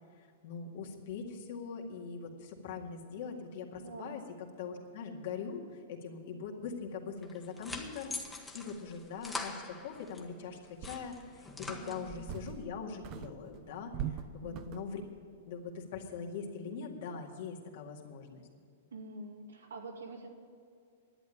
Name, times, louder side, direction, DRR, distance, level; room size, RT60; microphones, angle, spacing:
voice 1, 0.2-15.0 15.5-18.5, left 5 dB, 65° left, 1 dB, 2.0 m, -42 dB
voice 2, 3.8-4.2 11.7-12.5 14.4-14.8 18.9-20.3, right 2 dB, 90° right, 3 dB, 2.0 m, -46 dB
sound 1, 7.2-10.3 10.6-12.4, left 3 dB, 10° left, 1.2 m, -44 dB
sound 2, 10.2-10.3 10.8-11.4 11.9-12.8 13.0-15.0, right 9 dB, 40° right, 0.7 m, -42 dB
11.0 x 8.4 x 10.0 m, 2.3 s
hypercardioid pair, 135°, 0 cm